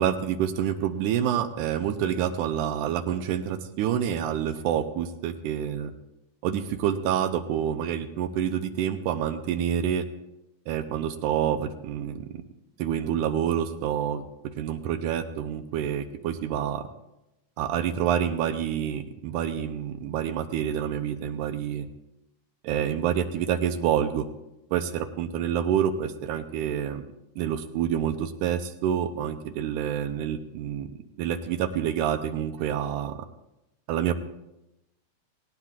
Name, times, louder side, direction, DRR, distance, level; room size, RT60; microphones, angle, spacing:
voice 1, 0.0-5.9 6.4-10.1 10.7-12.3 12.8-14.2 14.6-16.9 17.6-21.9 22.6-24.3 24.7-27.0 27.4-30.9 31.2-33.2 33.9-34.1, right 9 dB, 80° right, 8 dB, 2.2 m, -27 dB
18.0 x 17.5 x 2.4 m, 0.92 s
omnidirectional pair, 3.7 m